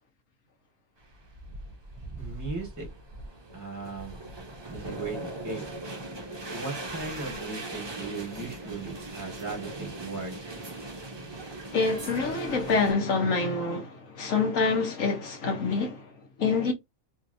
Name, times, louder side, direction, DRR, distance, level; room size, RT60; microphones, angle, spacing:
sound 1, 1.0-12.9, right 2 dB, 30° right, 0.5 m, -40 dB
voice 1, 2.2-2.9 3.5-4.2 4.7-5.6 6.5-10.4, right 3 dB, 15° right, 1.3 m, -37 dB
voice 2, 11.7-16.1 16.4-16.7, left 4 dB, 70° left, 1.5 m, -26 dB
3.2 x 2.8 x 2.6 m
omnidirectional pair, 1.4 m